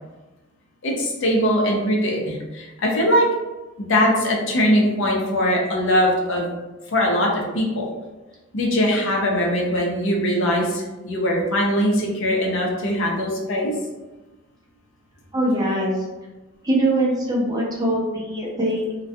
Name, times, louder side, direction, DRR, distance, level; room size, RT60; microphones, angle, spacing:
voice 1, 0.8-3.3 3.8-6.5 6.9-7.9 8.5-13.7, equal, 60° left, -2 dB, 0.5 m, -21 dB
voice 2, 15.3-16.0 16.6-18.9, right 1 dB, 15° right, -5 dB, 0.5 m, -22 dB
2.2 x 2.2 x 2.6 m, 1.1 s
head